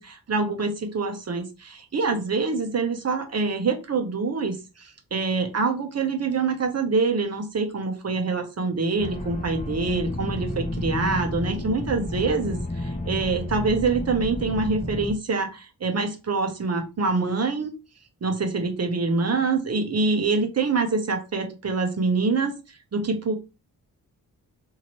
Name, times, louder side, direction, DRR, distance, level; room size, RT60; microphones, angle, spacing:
voice 1, 0.0-17.7 18.2-22.5 22.9-23.3, right 4 dB, 40° right, 5 dB, 0.9 m, -25 dB
sound 1, 9.0-15.1, left 1 dB, 20° left, 0.8 m, -31 dB
2.8 x 2.6 x 3.0 m, 0.28 s
cardioid pair, 65°, 38 cm